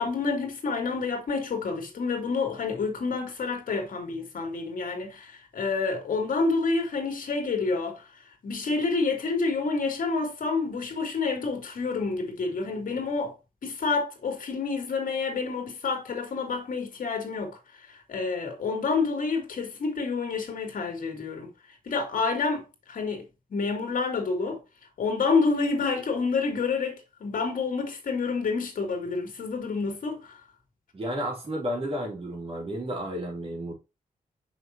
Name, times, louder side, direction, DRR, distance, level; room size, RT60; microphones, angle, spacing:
voice 1, 0.0-8.0 8.4-13.3 13.6-21.5 21.9-24.6 25.0-30.4, left 4 dB, 65° left, 2.6 m, -28 dB
voice 2, 30.9-33.7, equal, 40° right, 3.4 m, -32 dB
6.4 x 5.6 x 2.9 m
wide cardioid pair, 135°, 15 cm